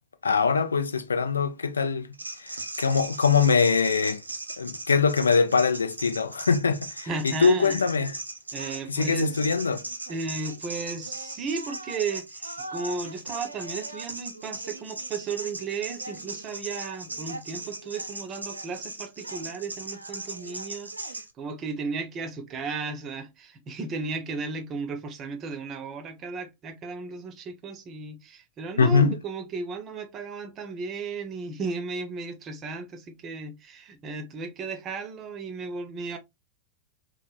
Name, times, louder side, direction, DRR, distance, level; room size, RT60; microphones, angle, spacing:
voice 1, 0.2-2.1 2.4-4.2 4.6-8.2 8.9-9.8 28.8-29.2, left 5 dB, 75° left, 0.3 m, -23 dB
sound 1, 2.1-21.3, right 2 dB, 80° right, 0.3 m, -38 dB
voice 2, 7.1-7.8 8.5-9.4 10.1-36.2, right 4 dB, 30° right, 0.7 m, -34 dB
3.2 x 2.1 x 2.4 m
figure-of-eight pair, 90°, 0 cm